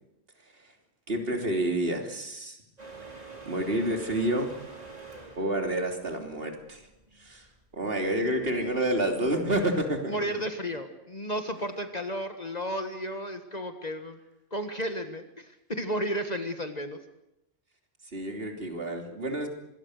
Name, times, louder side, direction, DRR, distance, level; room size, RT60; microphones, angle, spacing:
voice 1, 1.1-2.6 3.5-4.5 5.4-6.8 7.2-7.5 7.7-10.3 18.1-19.5, right 1 dB, 60° right, 4 dB, 3.5 m, -29 dB
sound 1, 2.8-9.4, right 3 dB, 35° right, 4.4 m, -47 dB
voice 2, 10.1-14.2 14.5-17.0, equal, 40° left, 7 dB, 1.7 m, -33 dB
25.5 x 21.0 x 6.6 m, 0.88 s
omnidirectional pair, 1.1 m